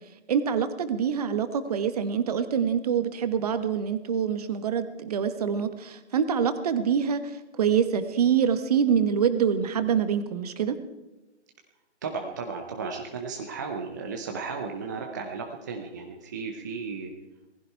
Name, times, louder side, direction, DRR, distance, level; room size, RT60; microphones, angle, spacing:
voice 1, 0.3-10.8, right 7 dB, 35° right, 10 dB, 1.2 m, -25 dB
voice 2, 12.0-17.1, right 5 dB, 15° right, 2 dB, 0.6 m, -34 dB
19.0 x 15.5 x 4.5 m, 1.1 s
hypercardioid pair, 155°, 35 cm